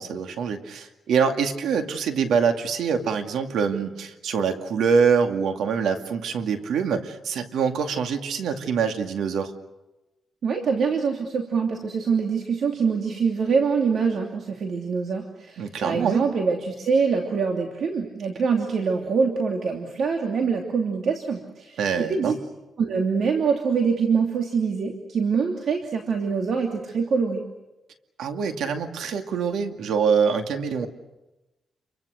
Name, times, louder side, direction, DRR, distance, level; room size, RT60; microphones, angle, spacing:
voice 1, 0.0-9.5 15.6-16.2 21.8-22.4 28.2-30.9, right 6 dB, 90° right, 6 dB, 2.3 m, -24 dB
voice 2, 10.4-22.4 22.8-27.4, right 5 dB, 65° right, 2 dB, 2.9 m, -24 dB
29.5 x 24.0 x 6.6 m, 0.99 s
cardioid pair, 110°, 0 cm